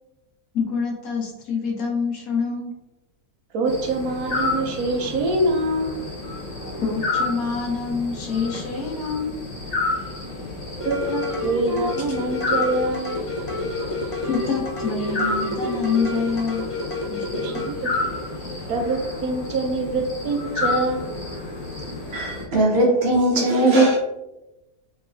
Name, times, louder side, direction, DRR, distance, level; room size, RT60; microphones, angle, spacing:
voice 1, 0.5-2.7 6.8-9.4 14.2-16.7 17.1-17.2, left 5 dB, 65° left, -1 dB, 1.4 m, -26 dB
voice 2, 3.5-6.0 10.8-13.2 17.3-18.2 18.7-21.1, right 2 dB, 80° right, 2 dB, 1.3 m, -25 dB
sound 1, 3.6-22.4, left 3 dB, 50° left, 1.9 m, -30 dB
sound 2, 10.8-17.7, left 2 dB, 30° left, 0.6 m, -29 dB
voice 3, 22.1-24.0, right 1 dB, 45° right, -2 dB, 1.2 m, -18 dB
3.8 x 3.5 x 3.3 m, 0.94 s
omnidirectional pair, 1.6 m